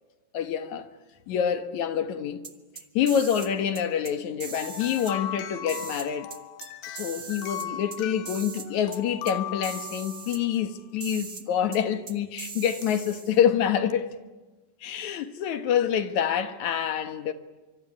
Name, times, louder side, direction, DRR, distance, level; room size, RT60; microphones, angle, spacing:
voice 1, 0.3-0.9 1.3-2.5 2.9-6.3 6.9-14.2 14.8-17.3, left 8 dB, 60° left, 2.3 m, -27 dB
sound 1, 2.4-3.5 3.7-4.1 4.4-5.1 5.7-6.7 6.9-8.0 8.2-8.7 8.9-9.0 9.3-9.4 9.6-10.4 11.0-11.4 11.7-11.8 12.1-13.4, right 6 dB, 60° right, 0.8 m, -40 dB
sound 2, 4.5-10.5 12.8-12.9 13.9-14.0, left 11 dB, 90° left, 3.4 m, -38 dB
25.5 x 24.0 x 9.9 m
omnidirectional pair, 4.5 m